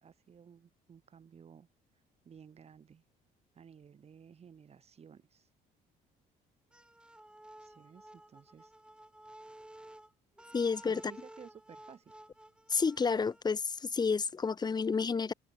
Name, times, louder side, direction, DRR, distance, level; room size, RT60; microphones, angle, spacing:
voice 1, 0.0-1.7 2.2-3.0 3.5-5.5 7.6-8.7 10.9-12.1, right 7 dB, 40° right, 2.4 m, -55 dB
sound 1, 6.7-13.4, right 1 dB, 5° right, 2.4 m, -54 dB
voice 2, 10.5-11.0 12.7-15.3, left 5 dB, 25° left, 1.1 m, -30 dB
cardioid pair, 110°, 17 cm